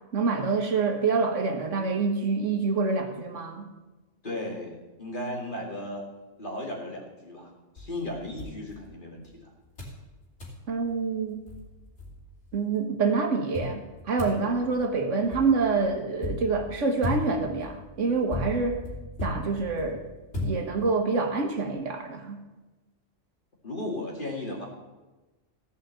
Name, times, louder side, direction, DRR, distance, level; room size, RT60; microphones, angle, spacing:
voice 1, 0.1-3.7 10.7-11.4 12.5-18.8 19.2-20.0 20.4-22.4, right 4 dB, 85° right, 5 dB, 1.7 m, -26 dB
voice 2, 4.2-6.0 6.4-9.5 23.6-24.7, left 1 dB, 45° left, -1 dB, 2.5 m, -35 dB
sound 1, 7.8-9.3 9.8-10.0 10.4-10.6 11.2-11.3 11.5-12.6 13.5-21.1, left 1 dB, 70° left, 3.1 m, -37 dB
15.0 x 5.5 x 7.7 m, 1.1 s
omnidirectional pair, 1.2 m